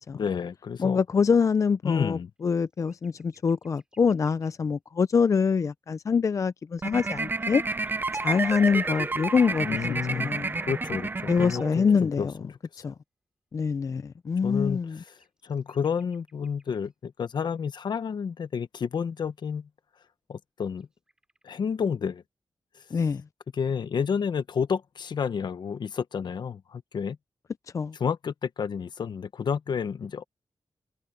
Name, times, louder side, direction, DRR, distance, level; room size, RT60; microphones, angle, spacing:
voice 1, 0.1-1.0 1.8-2.3 9.6-10.3 10.7-12.8 14.4-14.8 15.4-19.7 20.3-20.9 21.4-22.2 23.5-27.2 28.0-30.2, left 6 dB, 70° left, 1.1 m, -30 dB
voice 2, 0.8-7.6 8.1-9.8 10.1-10.6 11.3-12.3 12.8-12.9 13.5-15.0 22.9-23.2 27.7-27.9, left 5 dB, 40° left, 0.4 m, -25 dB
sound 1, 2.4-4.5 7.0-7.1 7.3-10.0 14.5-16.9 20.6-21.6, right 1 dB, 10° right, 6.8 m, -63 dB
sound 2, 6.8-12.0, right 3 dB, 25° right, 0.5 m, -30 dB
wide cardioid pair, 105°, 8 cm